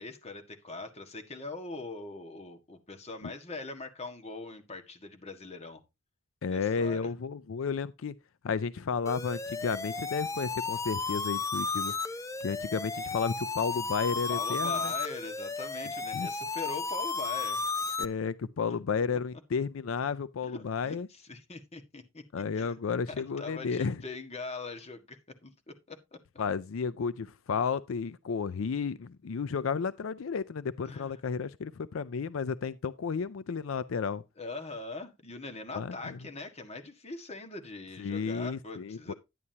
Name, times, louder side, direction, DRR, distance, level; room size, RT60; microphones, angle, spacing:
voice 1, 0.0-5.8 6.5-7.1 14.1-17.7 20.4-22.7 23.4-26.2 30.9-31.1 34.4-39.1, left 3 dB, 30° left, 1.7 m, -42 dB
voice 2, 6.4-8.1 8.4-11.9 12.4-14.9 16.1-16.3 18.0-21.1 22.3-24.0 26.4-34.2 35.7-36.2 38.0-39.1, left 5 dB, 90° left, 0.4 m, -32 dB
sound 1, 9.1-18.1, left 4 dB, 15° left, 0.5 m, -34 dB
11.0 x 9.7 x 2.8 m
head